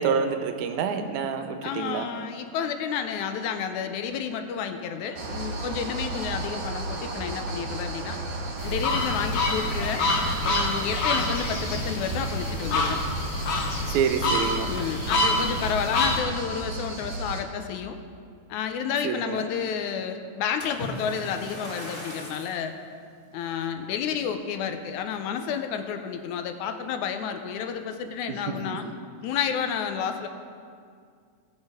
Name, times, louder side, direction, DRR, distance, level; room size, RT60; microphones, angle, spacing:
voice 1, 0.0-2.1 13.9-14.7 19.0-19.4 28.3-28.9, right 6 dB, 80° right, 7 dB, 2.0 m, -27 dB
voice 2, 1.6-8.2 8.6-10.1 10.4-13.0 14.7-18.0 18.5-22.7 23.3-28.9 29.2-30.3, left 7 dB, 85° left, 7 dB, 2.0 m, -30 dB
sound 1, 5.1-17.4, right 2 dB, 50° right, 1.6 m, -34 dB
sound 2, 8.6-16.2, left 2 dB, 55° left, 1.5 m, -27 dB
Splash splatter, 20.6-22.6 23.3-23.5 24.1-24.2, equal, 5° left, 1.6 m, -38 dB
17.0 x 6.4 x 4.9 m, 2.2 s
omnidirectional pair, 3.5 m